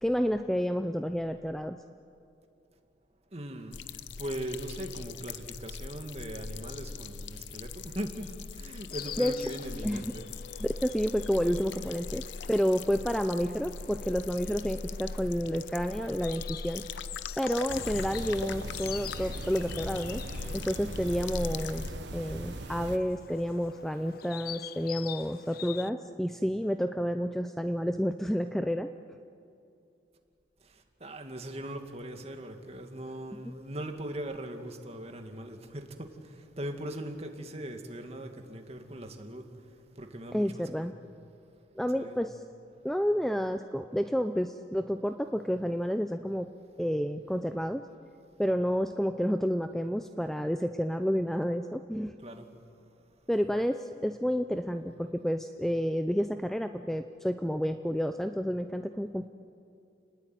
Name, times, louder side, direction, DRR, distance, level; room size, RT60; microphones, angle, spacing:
voice 1, 0.0-1.8 9.2-9.3 9.8-10.1 10.6-16.8 17.4-20.2 20.5-28.9 40.3-40.9 41.8-42.4 42.8-46.5 46.8-47.8 48.4-52.1 53.3-59.3, equal, ahead, 8 dB, 0.5 m, -30 dB
voice 2, 3.3-3.8 4.2-10.3 31.0-39.5 40.0-40.9 41.9-42.2 52.2-52.5, right 1 dB, 35° right, 5 dB, 2.2 m, -40 dB
sound 1, 3.7-21.9, left 4 dB, 85° left, 0.8 m, -40 dB
Insect, 8.9-25.9, left 10 dB, 55° left, 0.5 m, -46 dB
sound 2, 17.7-23.0, right 2 dB, 75° right, 1.2 m, -40 dB
29.5 x 20.0 x 9.3 m, 2.6 s
head